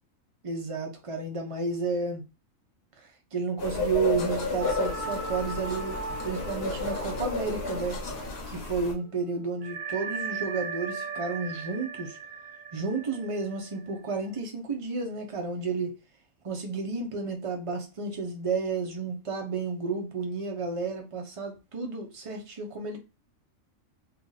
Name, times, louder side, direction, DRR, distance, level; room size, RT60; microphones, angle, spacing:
voice 1, 0.4-2.2 3.0-8.0 8.5-12.2 12.7-16.0 16.4-23.0, right 4 dB, 30° right, 0.6 m, -32 dB
sound 1, 3.6-8.9, left 3 dB, 50° left, 1.0 m, -32 dB
sound 2, 4.6-8.6 8.9-9.0 9.6-14.3, right 4 dB, 75° right, 1.3 m, -38 dB
2.8 x 2.5 x 3.8 m
omnidirectional pair, 1.4 m